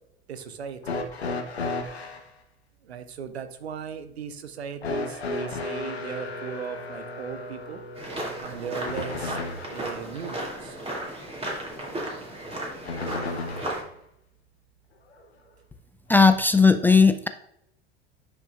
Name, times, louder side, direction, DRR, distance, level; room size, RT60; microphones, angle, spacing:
voice 1, 0.3-1.0 2.9-7.8 8.4-9.4 9.7-10.7, right 7 dB, 85° right, 10 dB, 0.7 m, -37 dB
sound 1, 0.8-2.3 4.8-9.9 12.8-13.9 15.1-15.2 16.3-16.4, left 3 dB, 90° left, 1.0 m, -34 dB
sound 2, 8.0-13.8, right 1 dB, 20° right, 2.4 m, -35 dB
voice 2, 16.1-17.3, left 4 dB, 5° left, 9 dB, 0.3 m, -17 dB
9.7 x 5.2 x 2.4 m, 0.75 s
hypercardioid pair, 75°, 31 cm